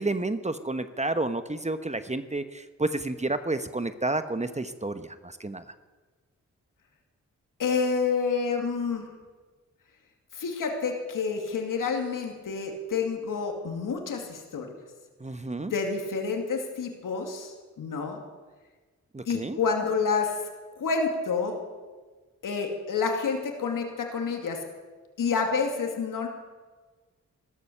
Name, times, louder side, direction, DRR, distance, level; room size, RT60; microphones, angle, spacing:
voice 1, 0.0-5.6 15.2-15.7 19.1-19.6, right 2 dB, 20° right, 10 dB, 1.1 m, -30 dB
voice 2, 7.6-9.0 10.3-14.7 15.7-18.2 19.3-20.3 20.8-21.6 22.4-24.6 25.2-26.3, left 5 dB, 80° left, 3 dB, 2.5 m, -28 dB
16.0 x 13.0 x 6.8 m, 1.3 s
supercardioid pair, 45°, 32 cm